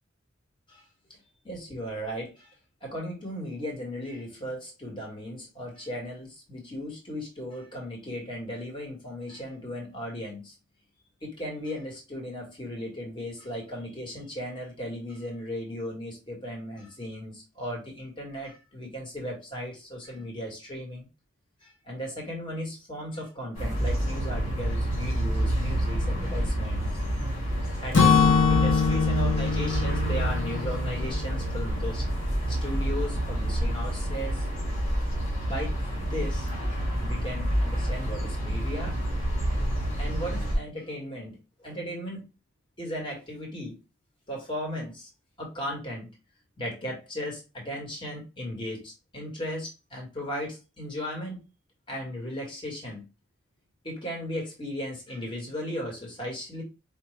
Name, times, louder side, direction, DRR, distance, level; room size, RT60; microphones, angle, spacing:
voice 1, 1.4-2.5 2.8-10.5 11.2-21.1 21.6-27.0 27.8-32.0 32.5-34.5 35.4-35.8 36.1-36.5 37.0-39.2 40.0-42.2 42.8-43.8 44.3-45.1 45.4-46.1 46.6-51.4 51.9-53.1 53.8-56.6, equal, 25° left, -1 dB, 1.3 m, -36 dB
sound 1, 23.5-40.6, right 1 dB, 90° left, 2.1 m, -28 dB
Acoustic guitar / Strum, 27.9-31.9, left 6 dB, 65° left, 0.8 m, -24 dB
4.7 x 2.3 x 3.1 m, 0.27 s
head